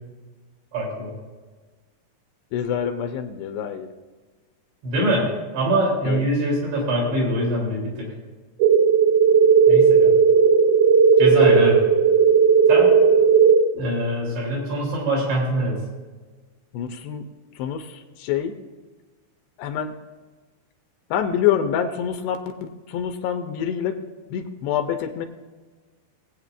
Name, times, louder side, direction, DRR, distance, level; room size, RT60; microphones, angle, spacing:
voice 1, 0.7-1.1 4.8-5.3 5.5-8.1 9.7-10.2 11.2-11.8 12.7-13.0 13.7-15.8, right 1 dB, 70° right, -4 dB, 5.2 m, -23 dB
voice 2, 2.5-3.9 6.0-6.2 16.7-17.2 17.6-18.6 19.6-19.9 21.1-22.4 22.9-24.0 24.3-25.3, left 9 dB, 80° left, 6 dB, 2.7 m, -26 dB
sound 1, 8.6-13.6, right 6 dB, 85° right, 3.1 m, -15 dB
20.0 x 8.6 x 2.5 m, 1.3 s
omnidirectional pair, 5.0 m